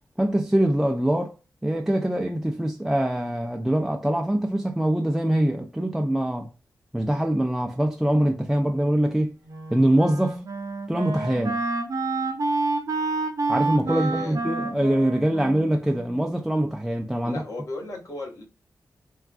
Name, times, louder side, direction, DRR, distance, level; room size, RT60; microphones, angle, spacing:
voice 1, 0.2-1.3 1.6-6.5 6.9-9.4 9.7-10.4 10.9-11.6 13.5-17.4, right 1 dB, 5° right, 0.3 m, -23 dB
Wind instrument woodwind instrument, 9.5-16.6, right 3 dB, 60° right, 0.7 m, -29 dB
voice 2, 13.8-14.4 17.2-18.4, left 2 dB, 55° left, 1.4 m, -35 dB
3.4 x 2.3 x 2.3 m
wide cardioid pair, 100°, 7 cm